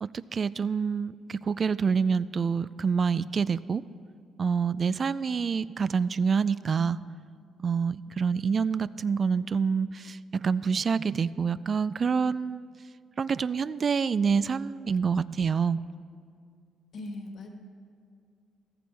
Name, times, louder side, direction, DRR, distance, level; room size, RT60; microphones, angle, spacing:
voice 1, 0.0-3.8 4.4-7.0 7.6-12.7 13.2-15.8, right 6 dB, 45° right, 17 dB, 0.3 m, -27 dB
voice 2, 16.9-17.5, left 2 dB, 60° left, 3 dB, 1.6 m, -39 dB
14.5 x 14.0 x 3.4 m, 2.3 s
cardioid pair, 90°, 0 cm